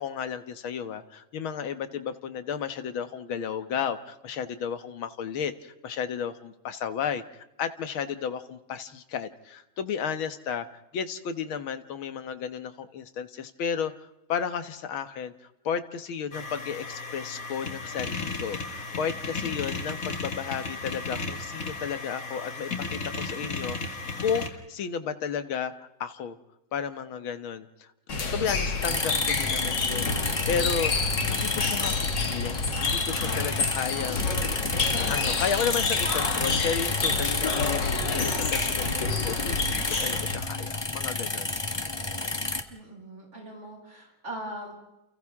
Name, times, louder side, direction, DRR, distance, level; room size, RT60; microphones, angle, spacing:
voice 1, 0.0-10.7 10.9-15.3 15.6-26.4 26.7-27.9 28.3-30.9 31.3-34.7 35.1-41.6, left 7 dB, 85° left, 10 dB, 2.1 m, -33 dB
sound 1, 16.3-24.5, left 3 dB, 45° left, 2.3 m, -35 dB
sound 2, 28.1-40.6, left 4 dB, 60° left, 2.6 m, -29 dB
sound 3, 28.8-42.6, left 2 dB, 15° left, 0.9 m, -31 dB
voice 2, 42.7-44.7, right 1 dB, 35° right, -2 dB, 7.9 m, -40 dB
29.5 x 29.5 x 3.7 m, 0.90 s
omnidirectional pair, 2.2 m